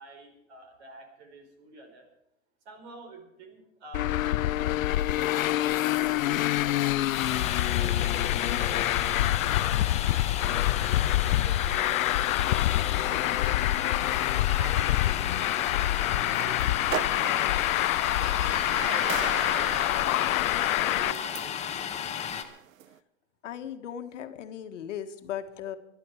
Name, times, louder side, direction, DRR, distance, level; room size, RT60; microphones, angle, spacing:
voice 1, 0.0-2.1 2.6-4.1 4.6-7.4 7.7-10.2 10.5-12.7 13.1-13.8 14.4-16.0 16.3-20.4 20.8-21.7, right 3 dB, 50° right, 5 dB, 4.6 m, -48 dB
Traffic noise roadway noise, 3.9-21.1, left 14 dB, 85° left, 0.5 m, -26 dB
Domestic sounds home sounds, 7.1-22.4, left 8 dB, 15° left, 1.1 m, -34 dB
sound 1, 12.9-23.0, right 10 dB, 80° right, 0.9 m, -41 dB
voice 2, 23.4-25.8, left 9 dB, 65° left, 8 dB, 1.5 m, -37 dB
20.0 x 12.0 x 4.8 m, 0.82 s
hypercardioid pair, 140°, 40 cm